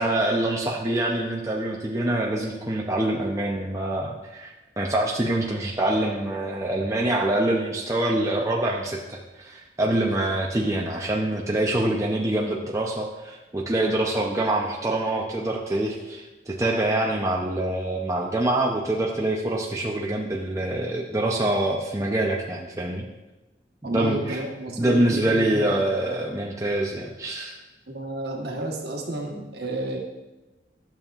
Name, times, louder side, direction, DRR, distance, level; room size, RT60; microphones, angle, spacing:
voice 1, 0.0-23.0 23.8-24.4 24.8-27.5, right 1 dB, 15° right, -2 dB, 0.6 m, -25 dB
voice 2, 23.8-25.7 27.9-30.0, right 1 dB, 60° right, 0 dB, 1.3 m, -31 dB
11.5 x 7.1 x 2.4 m, 1.1 s
head